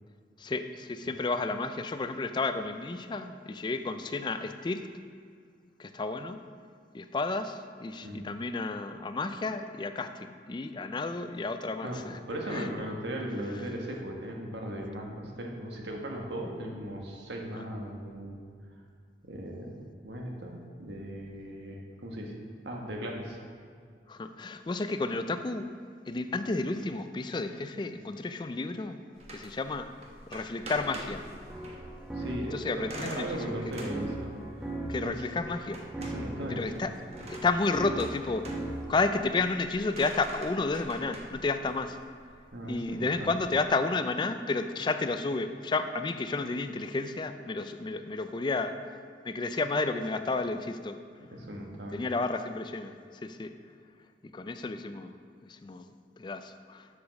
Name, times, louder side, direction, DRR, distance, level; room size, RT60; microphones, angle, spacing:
voice 1, 0.4-4.9 5.8-6.4 6.9-12.2 12.5-12.7 17.5-17.6 24.1-25.7 26.1-29.0 29.3-29.9 30.3-31.2 32.5-33.4 34.9-35.8 36.5-36.9 37.3-38.5 38.9-42.0 42.7-48.9 49.2-51.0 51.9-53.5 54.2-56.9, left 3 dB, 25° left, 9 dB, 0.3 m, -32 dB
voice 2, 11.8-18.4 19.2-22.4 22.6-23.4 32.1-34.3 35.0-35.2 36.0-36.8 42.5-43.3 51.3-52.0, right 1 dB, 80° right, 0 dB, 1.4 m, -37 dB
sound 1, 29.2-43.7, right 1 dB, 35° right, 1.0 m, -47 dB
sound 2, 31.3-39.0, right 2 dB, 5° right, 1.0 m, -39 dB
8.2 x 5.1 x 6.2 m, 2.2 s
head